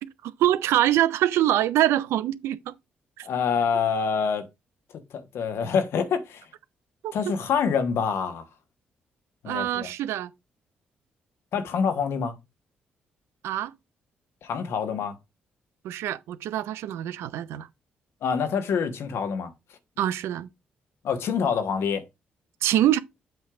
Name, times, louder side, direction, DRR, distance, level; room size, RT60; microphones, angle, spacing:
voice 1, 0.0-2.7 3.2-3.3 7.0-7.1 9.5-10.3 13.4-13.7 15.8-17.7 20.0-20.5 22.6-23.0, right 12 dB, 70° right, 0.4 m, -24 dB
voice 2, 3.2-4.5 4.9-6.5 7.1-8.5 9.4-9.9 11.5-12.4 14.4-15.2 18.2-19.5 21.0-22.1, left 6 dB, 65° left, 1.2 m, -26 dB
8.0 x 3.3 x 4.9 m
hypercardioid pair, 45°, 5 cm